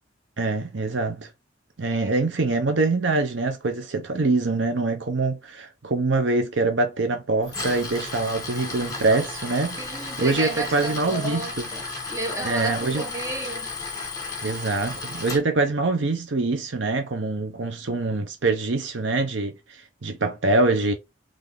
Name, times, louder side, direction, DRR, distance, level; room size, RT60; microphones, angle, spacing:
voice 1, 0.4-1.3 1.8-9.8 10.2-11.7 12.4-13.0 14.4-20.9, right 3 dB, 70° right, 0.8 m, -24 dB
Tools, 7.4-15.4, left 3 dB, 20° left, 1.9 m, -34 dB
voice 2, 9.8-11.8 12.1-13.7, right 2 dB, 15° right, 1.3 m, -32 dB
3.9 x 3.4 x 3.5 m
head